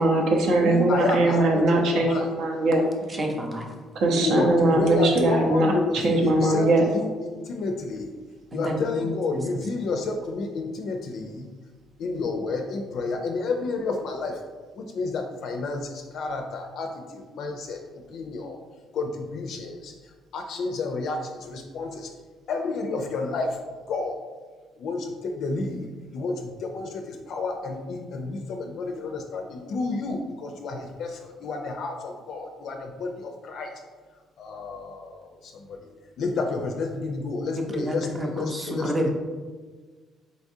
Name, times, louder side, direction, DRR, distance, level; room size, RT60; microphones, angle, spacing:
voice 1, 0.0-2.8 3.9-6.8, right 2 dB, 65° right, 1 dB, 0.7 m, -21 dB
voice 2, 0.6-2.3 4.1-8.1 8.5-11.5 12.0-14.4 14.8-17.8 18.1-18.6 18.9-19.9 20.3-22.1 22.5-23.6 23.9-24.2 24.8-25.9 26.1-33.7 34.4-35.8 36.2-39.1, left 3 dB, 55° left, 3 dB, 0.4 m, -30 dB
voice 3, 3.1-3.7 4.4-4.5 8.5-9.4 37.6-39.1, equal, 15° right, 2 dB, 0.5 m, -29 dB
4.0 x 3.5 x 2.6 m, 1.4 s
cardioid pair, 150°, 0 cm